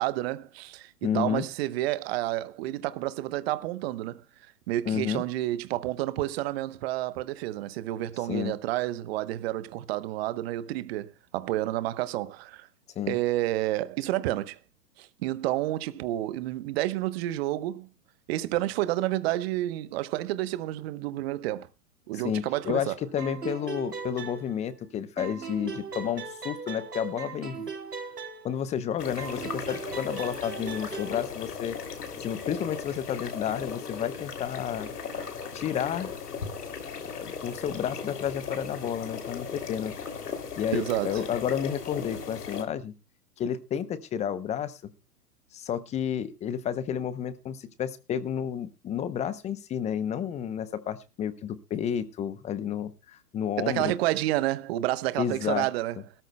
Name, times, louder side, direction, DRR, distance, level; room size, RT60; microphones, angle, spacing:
voice 1, 0.0-4.2 4.7-12.7 13.1-14.6 15.0-17.9 18.3-21.7 22.1-23.0 40.7-41.2 53.6-56.0, right 15 dB, 40° right, 1.0 m, -30 dB
voice 2, 1.0-1.5 4.9-5.2 8.3-8.5 13.0-13.2 22.1-27.7 28.4-31.8 32.2-34.9 35.5-36.1 37.0-39.9 40.6-42.9 43.4-44.9 45.5-53.9 55.2-55.7, left 9 dB, 15° left, 0.7 m, -31 dB
sound 1, 23.2-24.9 25.2-28.8 29.2-31.2, right 5 dB, 85° right, 3.8 m, -39 dB
sound 2, 29.0-42.6, left 6 dB, 75° left, 3.1 m, -37 dB
20.5 x 13.5 x 2.2 m
hypercardioid pair, 120°, 47 cm